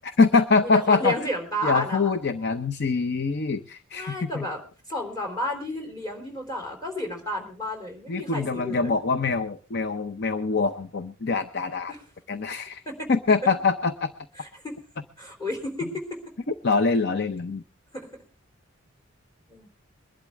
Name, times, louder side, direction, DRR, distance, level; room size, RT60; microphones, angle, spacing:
voice 1, 0.0-1.2 1.6-4.5 8.1-11.9 12.3-12.8 13.1-14.1 16.5-17.6, left 4 dB, 50° left, 10 dB, 0.7 m, -24 dB
voice 2, 0.6-2.1 3.9-4.6 4.9-8.9 11.9-12.0 12.9-13.1 14.4-14.8 15.2-16.0 17.9-18.1 19.5-19.7, equal, 15° left, 2 dB, 3.7 m, -32 dB
22.5 x 11.5 x 3.5 m, 0.37 s
head